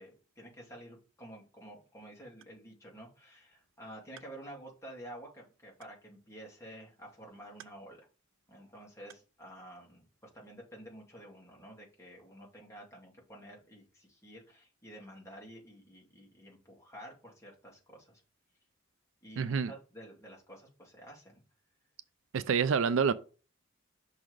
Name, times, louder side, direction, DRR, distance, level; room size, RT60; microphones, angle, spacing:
voice 1, 0.0-8.0 8.5-10.1 10.3-18.2 19.2-21.4, right 1 dB, 15° left, 2.4 m, -50 dB
voice 2, 19.4-19.7 22.3-23.1, right 6 dB, 75° right, 0.4 m, -27 dB
5.9 x 4.0 x 4.9 m
head